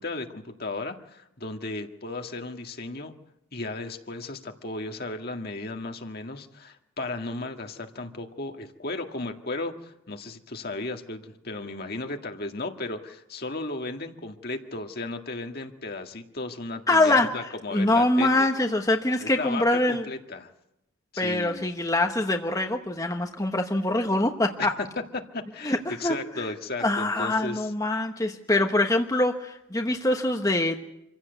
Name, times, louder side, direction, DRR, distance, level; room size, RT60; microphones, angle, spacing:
voice 1, 0.0-3.1 3.5-18.5 19.2-20.5 21.1-21.7 24.6-24.7 25.1-27.7, left 2 dB, 50° left, 4 dB, 1.9 m, -35 dB
voice 2, 16.9-17.3 17.7-20.0 21.2-24.7 25.6-26.1 26.8-30.8, left 2 dB, 15° left, 3 dB, 1.1 m, -24 dB
26.0 x 16.0 x 8.2 m, 0.86 s
head